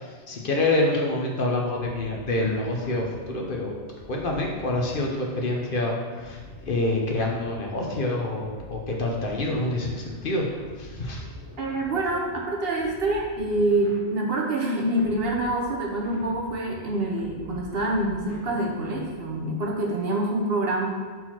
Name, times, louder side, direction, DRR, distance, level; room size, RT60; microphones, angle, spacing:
voice 1, 0.0-3.8 4.1-6.4 6.7-10.5 10.8-11.2, left 2 dB, 55° left, 0 dB, 1.0 m, -27 dB
sound 1, 1.8-19.4, left 2 dB, 85° left, 1.2 m, -46 dB
voice 2, 11.6-20.9, right 2 dB, 60° right, -1 dB, 1.1 m, -26 dB
4.5 x 4.1 x 5.7 m, 1.5 s
omnidirectional pair, 1.1 m